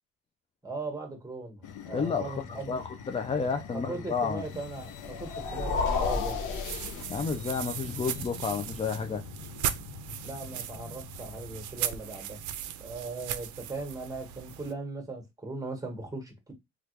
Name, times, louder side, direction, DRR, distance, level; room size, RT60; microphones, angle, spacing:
voice 1, 0.6-2.8 3.7-6.4 10.2-12.4 12.8-16.5, right 3 dB, 10° right, 1.2 m, -39 dB
sound 1, 1.6-12.2, left 7 dB, 85° left, 0.5 m, -45 dB
voice 2, 1.9-4.4 7.1-9.2, left 5 dB, 20° left, 0.4 m, -31 dB
sound 2, 4.9-7.6, left 4 dB, 70° left, 1.2 m, -31 dB
sound 3, 6.1-14.7, right 10 dB, 75° right, 0.5 m, -38 dB
3.3 x 2.4 x 3.1 m
cardioid pair, 90°, 30 cm